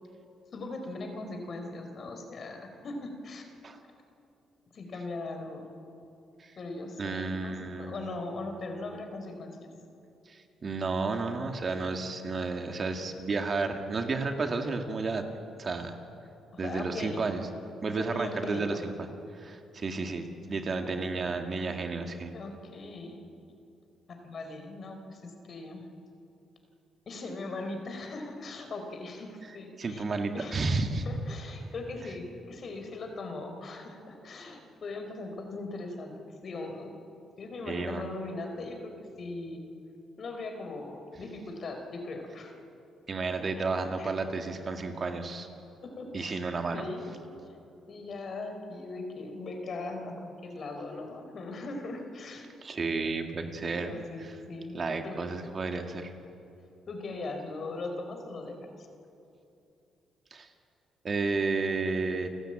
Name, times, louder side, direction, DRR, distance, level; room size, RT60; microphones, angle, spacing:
voice 1, 0.5-3.5 4.7-5.7 6.6-9.7 16.5-17.2 17.9-18.9 20.7-21.2 22.3-23.3 24.1-25.9 27.1-30.7 31.1-36.1 36.4-37.0 37.4-39.6 40.2-42.5 44.0-44.1 45.8-46.4 46.7-47.2 47.4-47.6 47.9-52.5 53.7-55.2 56.9-58.9, left 2 dB, 50° left, 5 dB, 4.1 m, -39 dB
voice 2, 7.0-8.1 10.3-15.2 15.6-16.0 16.6-17.4 17.8-18.9 19.3-22.3 29.8-31.1 37.6-38.0 43.1-45.5 46.1-46.9 52.6-53.9 54.7-56.1 60.3-60.5 61.0-62.3, right 3 dB, 40° right, 5 dB, 2.1 m, -32 dB
29.5 x 13.0 x 9.0 m, 2.8 s
cardioid pair, 90°, 0 cm